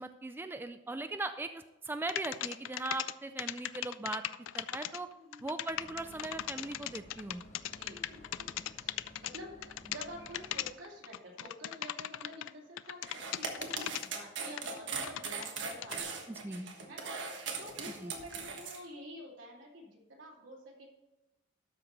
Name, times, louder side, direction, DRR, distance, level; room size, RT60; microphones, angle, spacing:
voice 1, 0.0-4.2 4.5-5.1 5.4-7.4 16.3-16.7 18.0-18.1, right 2 dB, 10° right, 8 dB, 0.3 m, -39 dB
sound 1, 2.1-3.1 3.4-12.5 12.8-14.1 14.6-16.0, left 12 dB, 85° left, 0.4 m, -38 dB
voice 2, 5.1-5.5 7.7-13.0 13.3-20.9, equal, 80° right, -2 dB, 2.8 m, -49 dB
sound 2, 5.7-10.7, equal, 35° left, 1.5 m, -55 dB
sound 3, 13.0-18.8, right 5 dB, 65° right, 1.5 m, -39 dB
12.5 x 4.8 x 5.3 m, 0.97 s
head